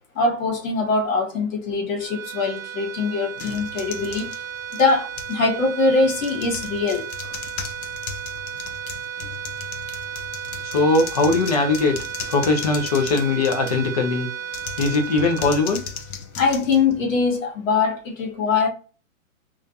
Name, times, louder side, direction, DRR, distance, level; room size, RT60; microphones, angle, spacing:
voice 1, 0.1-4.4 4.8-7.1 16.3-18.7, left 4 dB, 65° left, 1.2 m, -22 dB
sound 1, 2.0-16.5, right 8 dB, 75° right, 0.6 m, -34 dB
sound 2, 3.4-5.4 6.0-13.9 14.5-17.4, left 7 dB, 85° left, 0.6 m, -37 dB
voice 2, 10.6-12.0 12.3-14.3 14.8-15.8, left 3 dB, 30° left, 0.4 m, -20 dB
2.4 x 2.3 x 2.4 m
hypercardioid pair, 140°, 41 cm